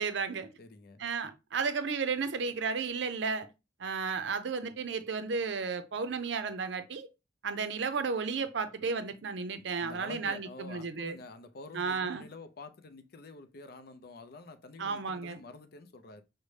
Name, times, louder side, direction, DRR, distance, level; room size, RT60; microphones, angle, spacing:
voice 1, 0.0-0.5 1.0-3.5 3.8-7.1 7.4-11.2 11.7-12.2 14.8-15.4, right 5 dB, 65° right, 0.5 m, -33 dB
voice 2, 0.6-1.0 9.8-16.2, left 3 dB, 50° left, 0.5 m, -48 dB
6.3 x 2.1 x 3.2 m
head